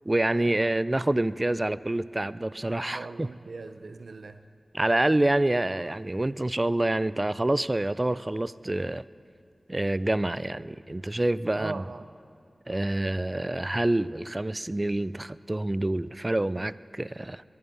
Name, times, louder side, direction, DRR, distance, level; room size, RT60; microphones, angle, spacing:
voice 1, 0.1-3.3 4.7-9.0 9.7-11.9 12.7-17.4, right 1 dB, 25° right, 17 dB, 0.3 m, -27 dB
voice 2, 2.9-4.4 11.6-12.0, right 3 dB, 85° right, 10 dB, 0.5 m, -40 dB
21.5 x 11.0 x 4.3 m, 2.2 s
wide cardioid pair, 70°, 0 cm